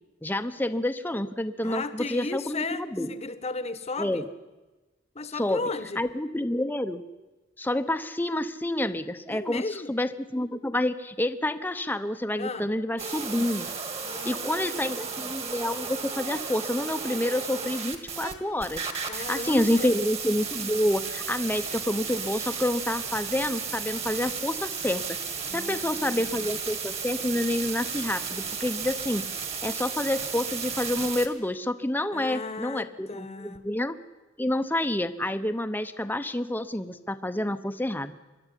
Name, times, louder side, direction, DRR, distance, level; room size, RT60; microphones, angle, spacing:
voice 1, 0.2-3.1 4.0-4.2 5.4-5.6 6.0-7.0 7.6-9.6 9.9-13.7 14.2-25.2 25.5-29.2 29.6-34.0 34.4-38.2, left 1 dB, 10° left, 9 dB, 0.7 m, -28 dB
voice 2, 1.6-4.3 5.1-6.0 9.3-9.9 12.4-12.7 14.0-15.3 19.1-20.0 25.5-26.6 32.1-33.6, left 3 dB, 35° left, 12 dB, 1.1 m, -36 dB
sound 1, 13.0-18.3 18.6-31.3, right 6 dB, 30° right, 1.9 m, -34 dB
24.0 x 11.5 x 10.0 m, 1.2 s
head